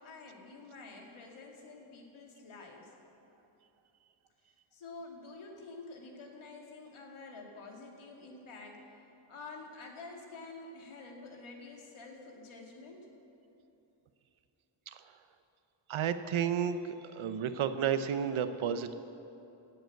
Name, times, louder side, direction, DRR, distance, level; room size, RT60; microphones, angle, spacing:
voice 1, 0.0-2.9 4.4-13.1, left 3 dB, 80° left, 0 dB, 2.5 m, -49 dB
voice 2, 15.9-16.8 17.1-18.9, right 8 dB, 80° right, 11 dB, 0.9 m, -31 dB
17.0 x 7.9 x 7.9 m, 2.9 s
wide cardioid pair, 125°, 48 cm